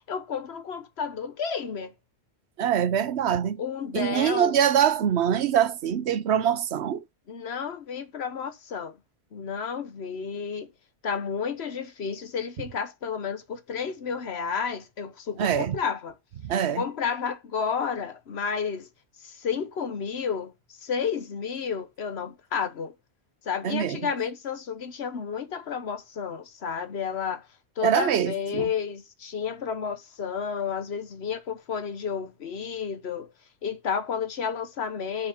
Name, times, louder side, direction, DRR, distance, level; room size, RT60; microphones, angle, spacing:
voice 1, 0.1-1.9 3.6-4.5 7.3-9.0 9.3-10.7 11.0-16.1 16.8-18.9 19.2-22.9 23.4-27.5 27.8-33.3 33.6-35.3, left 6 dB, 75° left, 1.3 m, -31 dB
voice 2, 2.6-3.6 3.9-7.0 15.4-15.8 16.4-16.8 23.6-24.0 27.8-28.7, right 9 dB, 90° right, 1.0 m, -24 dB
7.5 x 4.2 x 5.9 m
omnidirectional pair, 1.1 m